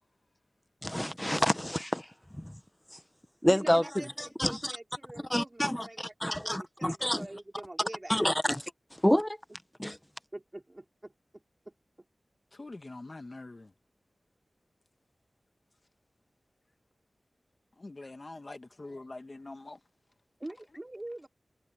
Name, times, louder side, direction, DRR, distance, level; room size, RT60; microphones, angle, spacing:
voice 1, 0.8-2.1 2.3-2.6 2.9-3.0 3.4-4.7 5.3-7.3 8.1-9.4 9.8-10.0, equal, 10° left, 1.1 m, -29 dB
voice 2, 3.4-8.3 10.3-11.7 20.4-21.3, right 1 dB, 30° right, 3.1 m, -45 dB
voice 3, 12.5-13.7 17.8-19.8, left 2 dB, 45° left, 1.6 m, -44 dB
cardioid pair, 50°, 0 cm